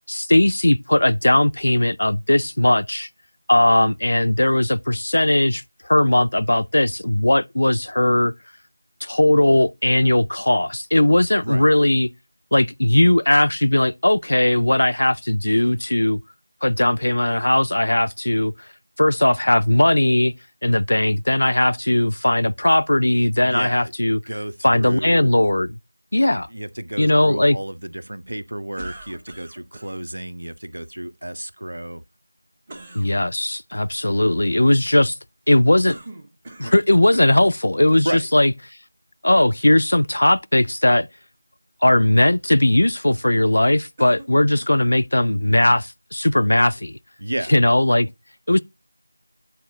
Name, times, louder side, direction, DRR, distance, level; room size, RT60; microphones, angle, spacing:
voice 1, 0.1-3.1 3.5-8.3 9.0-12.1 12.5-16.2 16.6-18.5 19.0-20.3 20.6-24.2 24.6-25.8 26.1-26.5 27.0-27.6 32.9-35.2 35.5-36.0 36.6-38.5 39.2-41.1 41.8-47.0 47.5-48.1 48.5-48.6, left 1 dB, 65° left, 0.4 m, -18 dB
voice 2, 23.4-23.9 24.3-25.3 26.5-32.0 38.0-38.3 47.2-47.5, right 1 dB, 80° right, 0.8 m, -31 dB
sound 1, 28.8-29.9 32.7-33.1 35.9-36.9 37.1-37.5 38.3-38.4 44.0-44.9, right 2 dB, 20° right, 1.2 m, -40 dB
9.2 x 4.3 x 3.8 m
figure-of-eight pair, 175°, 0 cm